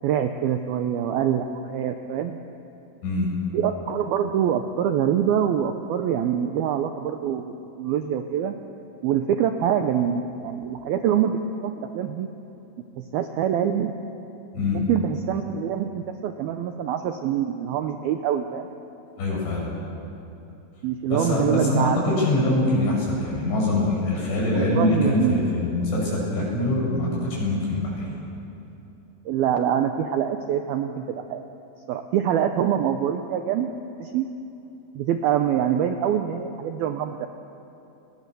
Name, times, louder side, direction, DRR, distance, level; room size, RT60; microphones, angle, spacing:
voice 1, 0.0-2.4 3.5-7.5 7.8-8.5 9.0-12.3 13.0-13.9 14.7-18.7 20.8-22.2 24.5-25.5 29.3-31.5 31.9-33.7 34.0-34.3 35.0-37.3, right 9 dB, 90° right, 6 dB, 2.1 m, -25 dB
voice 2, 3.0-3.3 14.5-14.8 19.2-19.7 21.1-27.1 27.4-28.0, left 1 dB, 75° left, -4 dB, 10.5 m, -23 dB
30.0 x 23.0 x 6.9 m, 2.8 s
omnidirectional pair, 5.4 m